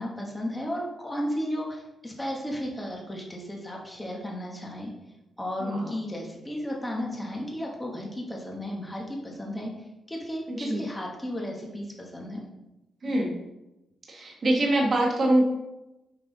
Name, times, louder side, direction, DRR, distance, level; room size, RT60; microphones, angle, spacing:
voice 1, 0.0-4.9 5.4-9.7 10.1-12.4, equal, 10° left, -2 dB, 1.2 m, -34 dB
voice 2, 5.6-5.9 10.5-10.8 13.0-13.4 14.1-15.5, right 1 dB, 35° right, -1 dB, 1.3 m, -24 dB
6.0 x 5.4 x 3.9 m, 0.94 s
wide cardioid pair, 180°, 0 cm